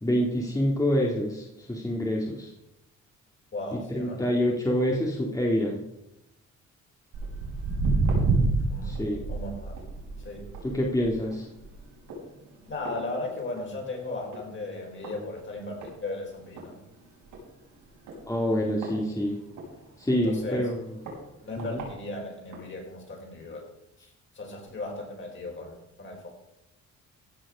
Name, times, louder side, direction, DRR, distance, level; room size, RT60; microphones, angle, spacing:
voice 1, 0.0-2.5 3.9-5.8 8.8-9.2 10.7-11.4 18.3-19.4 20.0-20.8 21.6-21.8, equal, 10° left, -2 dB, 2.2 m, -26 dB
voice 2, 3.5-4.5 8.7-9.0 9.3-9.8 10.2-10.6 12.7-16.8 20.1-20.7 21.4-23.7 24.0-24.1 24.3-26.3, left 2 dB, 40° left, 0 dB, 4.9 m, -36 dB
Walk footsteps, 7.1-13.8 14.1-14.5 15.0-15.1 15.8-15.9 16.3-16.4 16.6-16.7 17.2-17.4 18.1-19.7 20.2-20.3 21.1-21.2 21.6-21.8 22.5-22.6, right 3 dB, 85° right, 5.2 m, -29 dB
15.5 x 6.3 x 6.1 m, 0.87 s
cardioid pair, 90°, 30 cm